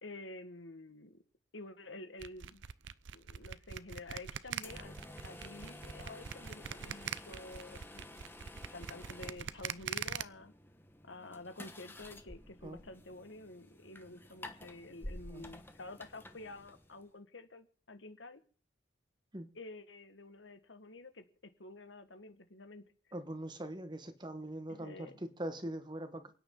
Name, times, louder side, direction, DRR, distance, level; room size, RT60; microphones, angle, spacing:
voice 1, 0.0-1.2 1.5-2.6 3.1-8.3 8.7-10.5 11.0-18.4 19.5-22.8 24.7-25.2, left 2 dB, 80° left, 1.7 m, -50 dB
sound 1, 2.2-10.2, right 8 dB, 85° right, 0.6 m, -42 dB
sound 2, 4.6-17.1, left 1 dB, 10° left, 1.1 m, -51 dB
voice 2, 23.1-26.3, right 1 dB, 25° right, 1.4 m, -42 dB
28.5 x 9.7 x 3.9 m
head